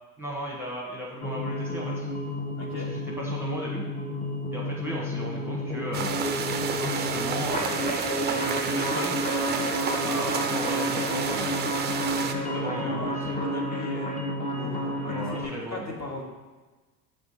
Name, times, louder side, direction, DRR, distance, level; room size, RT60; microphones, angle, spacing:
voice 1, 0.2-2.1 2.7-3.8 4.5-6.4 6.8-9.2 10.0-11.5 12.4-13.4 15.0-15.9, equal, 5° right, -3 dB, 1.1 m, -36 dB
sound 1, 1.2-15.5, equal, 15° left, 1.1 m, -30 dB
voice 2, 2.6-2.9 12.2-14.2 14.5-16.2, left 2 dB, 35° left, -1 dB, 1.5 m, -38 dB
sound 2, 5.9-12.3, right 6 dB, 25° right, 0.4 m, -31 dB
6.0 x 3.6 x 5.5 m, 1.2 s
hypercardioid pair, 80°, 49 cm